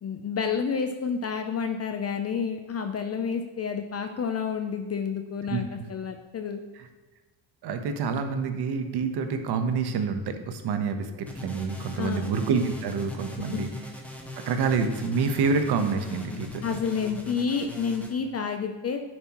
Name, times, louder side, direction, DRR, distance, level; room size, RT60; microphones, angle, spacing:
voice 1, 0.0-6.6 12.0-12.3 13.5-13.8 16.6-19.0, left 6 dB, 35° left, 6 dB, 0.6 m, -30 dB
voice 2, 7.6-13.7 14.5-16.8, right 5 dB, 55° right, 7 dB, 1.2 m, -27 dB
sound 1, 11.3-18.1, left 1 dB, 5° left, 1.3 m, -41 dB
9.9 x 7.5 x 3.1 m, 1.3 s
cardioid pair, 115°, 46 cm